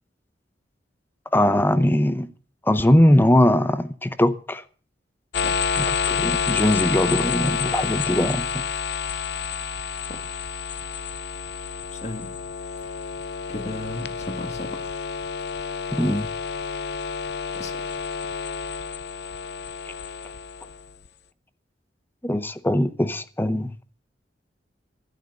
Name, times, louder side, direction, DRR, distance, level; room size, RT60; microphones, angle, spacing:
voice 1, 1.3-2.3 2.6-4.6 5.7-8.6 15.9-16.3 22.2-23.7, left 1 dB, 10° left, 0.8 m, -20 dB
sound 1, 5.3-21.1, left 6 dB, 65° left, 0.7 m, -29 dB
voice 2, 11.9-12.4 13.5-14.9 17.5-18.1, left 1 dB, 40° left, 1.9 m, -35 dB
12.0 x 11.5 x 6.5 m
head